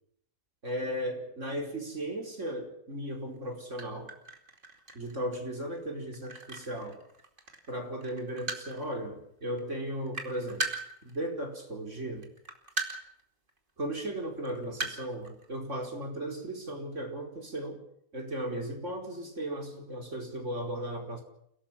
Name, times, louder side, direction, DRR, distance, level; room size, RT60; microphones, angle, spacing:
voice 1, 0.6-4.1 4.9-7.0 7.7-10.7 11.0-12.3 13.8-17.8 18.1-21.2, right 1 dB, 60° right, 2 dB, 5.1 m, -36 dB
sound 1, 3.4-3.5 3.8-7.8 8.0-8.9 9.5-9.6 9.9-11.6 12.2-13.2 13.5-13.6 14.2-15.4, right 2 dB, 35° right, 2.9 m, -38 dB
29.5 x 17.5 x 5.9 m, 0.70 s
omnidirectional pair, 1.4 m